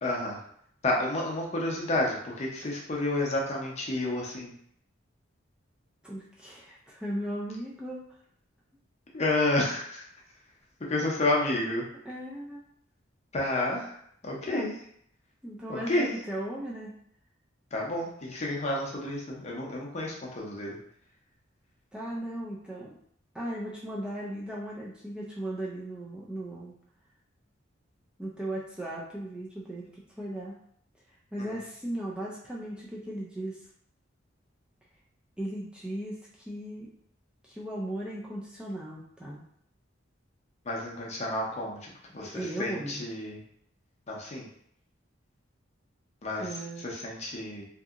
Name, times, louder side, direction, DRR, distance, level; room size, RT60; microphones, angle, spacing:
voice 1, 0.0-0.4 0.8-4.5 9.1-10.1 10.8-11.9 13.3-13.9 14.2-14.7 15.7-16.1 17.7-20.8 31.4-31.6 40.7-43.4 44.1-44.5 46.2-47.7, left 2 dB, 35° left, -2 dB, 0.6 m, -30 dB
voice 2, 6.0-8.0 12.1-12.6 14.5-14.7 15.4-16.9 21.9-22.9 23.3-26.8 28.2-30.6 31.3-33.6 35.4-36.9 37.4-39.4 42.2-43.0 46.4-46.9, right 1 dB, 5° right, -5 dB, 0.3 m, -37 dB
2.7 x 2.6 x 2.4 m, 0.67 s
head